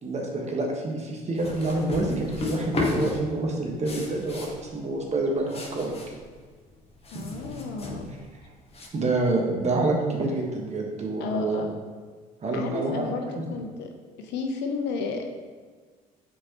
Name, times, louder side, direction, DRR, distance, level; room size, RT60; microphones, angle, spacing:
voice 1, 0.0-6.0 7.1-7.2 8.9-11.6 12.4-13.1, right 2 dB, 40° right, 0 dB, 1.5 m, -27 dB
sound 1, 1.3-8.9, left 2 dB, 35° left, 1.5 m, -34 dB
voice 2, 7.1-8.1 11.2-11.7 12.5-13.9 14.2-15.2, left 4 dB, 70° left, 4 dB, 0.8 m, -32 dB
7.5 x 4.6 x 3.1 m, 1.5 s
hypercardioid pair, 70°, 18 cm